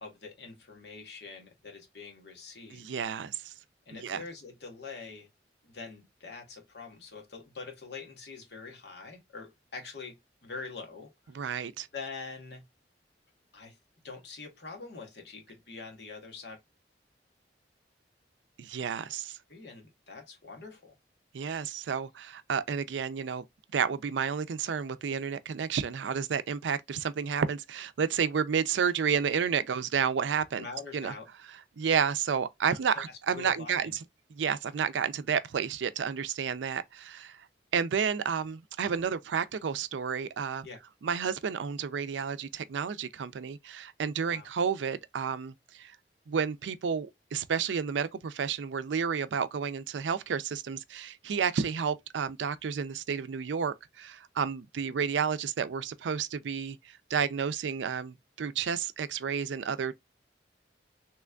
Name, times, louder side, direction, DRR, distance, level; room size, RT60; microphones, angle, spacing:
voice 1, 0.0-2.9 3.9-5.3 5.6-11.5 11.9-12.6 13.5-13.8 14.0-16.6 19.5-21.0 28.8-29.1 29.7-29.8 30.6-31.3 32.7-34.0 40.6-40.8 44.2-44.5, left 4 dB, 65° left, 1.1 m, -44 dB
voice 2, 2.7-3.5 4.0-4.2 11.3-11.9 18.6-19.4 21.3-23.4 23.7-30.6 30.9-31.1 31.8-33.9 34.3-37.4 37.7-40.7 41.0-46.0 46.3-56.8 57.1-59.9, right 6 dB, 85° right, 0.4 m, -31 dB
3.3 x 3.0 x 2.3 m
head